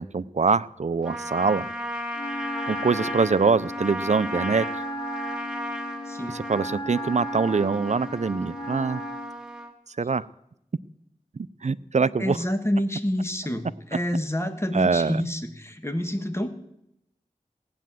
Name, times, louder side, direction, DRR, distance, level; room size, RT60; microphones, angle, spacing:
voice 1, 0.0-1.7 2.7-4.7 6.3-9.0 10.0-10.2 11.4-12.4 14.7-15.2, right 4 dB, 55° right, 16 dB, 0.5 m, -24 dB
Trumpet, 1.0-9.7, equal, 5° right, 1.8 m, -35 dB
Wind instrument woodwind instrument, 2.1-9.4, equal, 35° left, 1.9 m, -36 dB
voice 2, 6.0-6.4 12.2-16.5, equal, 20° left, 7 dB, 1.6 m, -28 dB
17.0 x 9.3 x 7.6 m, 0.79 s
wide cardioid pair, 55°, 14 cm